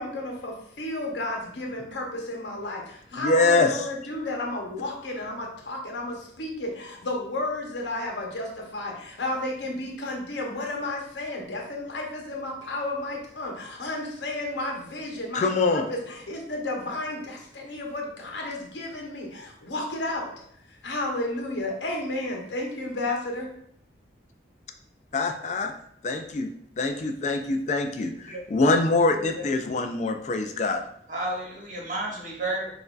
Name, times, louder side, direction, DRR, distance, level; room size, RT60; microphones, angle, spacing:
voice 1, 0.0-20.3 20.8-23.5, left 2 dB, 85° left, 0 dB, 0.9 m, -32 dB
voice 2, 3.2-3.9 15.3-15.9 25.1-25.7 26.0-26.5 26.8-30.8, left 3 dB, 40° left, 5 dB, 0.3 m, -24 dB
voice 3, 28.3-28.7 29.1-29.4 31.1-32.7, right 1 dB, 45° right, -2 dB, 1.1 m, -32 dB
5.9 x 2.5 x 2.4 m, 0.69 s
head